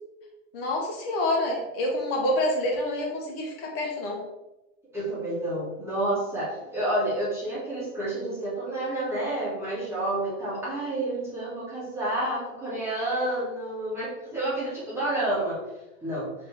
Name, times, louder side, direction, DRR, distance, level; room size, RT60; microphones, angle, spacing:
voice 1, 0.5-4.2, left 1 dB, 45° left, 0 dB, 1.3 m, -27 dB
voice 2, 4.9-15.6 16.0-16.3, right 1 dB, 5° right, -9 dB, 1.4 m, -29 dB
3.7 x 3.1 x 3.6 m, 0.98 s
hypercardioid pair, 145°, 42 cm